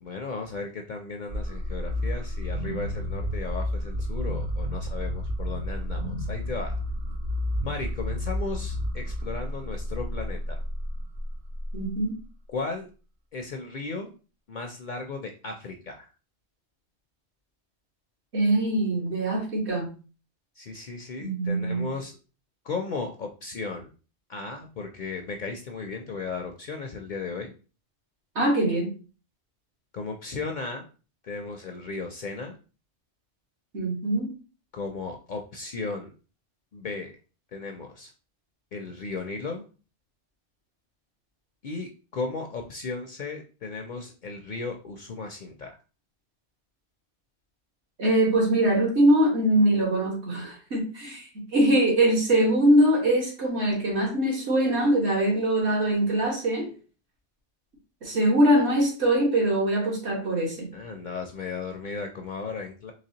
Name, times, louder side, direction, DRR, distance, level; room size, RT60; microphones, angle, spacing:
voice 1, 0.0-6.8 7.6-10.6 12.5-12.9 13.3-14.1 14.5-16.1 20.6-22.2 22.6-23.9 24.3-27.5 29.9-30.9 31.2-32.6 34.7-36.1 36.7-37.1 37.5-38.1 38.7-39.7 41.6-45.8 60.7-62.9, left 4 dB, 55° left, 4 dB, 0.5 m, -35 dB
sound 1, 1.3-12.2, left 1 dB, 50° right, 0.6 m, -31 dB
voice 2, 11.7-12.1 18.3-19.9 21.2-21.8 28.3-28.9 33.7-34.3 48.0-51.3 51.5-56.7 58.0-60.7, right 1 dB, 70° right, -1 dB, 1.6 m, -22 dB
4.0 x 3.1 x 2.8 m, 0.35 s
omnidirectional pair, 1.2 m